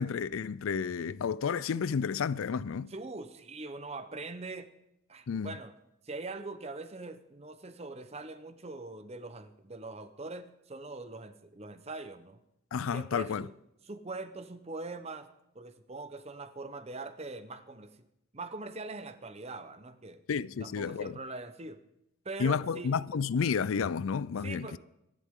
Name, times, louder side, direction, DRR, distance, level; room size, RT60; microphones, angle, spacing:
voice 1, 0.0-2.9 5.3-5.5 12.7-13.5 20.3-21.2 22.4-24.8, left 6 dB, 80° left, 0.4 m, -31 dB
voice 2, 2.9-4.7 5.1-5.7 6.0-12.4 12.9-13.5 13.8-15.3 15.5-17.9 18.3-20.2 20.6-21.8 22.2-23.0 24.4-24.8, right 3 dB, 30° right, 0.9 m, -42 dB
25.5 x 11.5 x 3.7 m
head